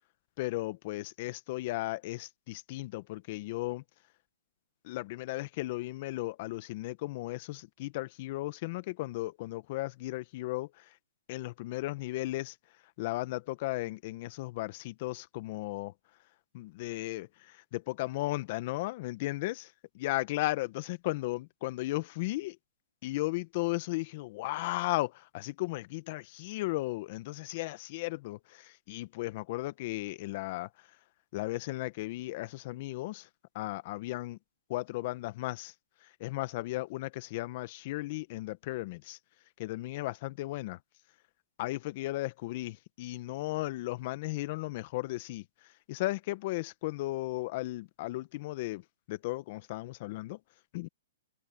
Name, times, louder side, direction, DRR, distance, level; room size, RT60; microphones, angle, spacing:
voice 1, 0.4-3.8 4.8-11.0 11.3-12.6 13.0-15.9 16.5-17.3 17.7-19.7 19.9-22.6 23.0-31.0 31.3-33.3 33.5-34.4 34.7-35.7 36.0-39.2 39.6-40.8 41.6-50.4 50.7-50.9, left 19 dB, 45° left, 1.5 m, -35 dB
hypercardioid pair, 140°, 0 cm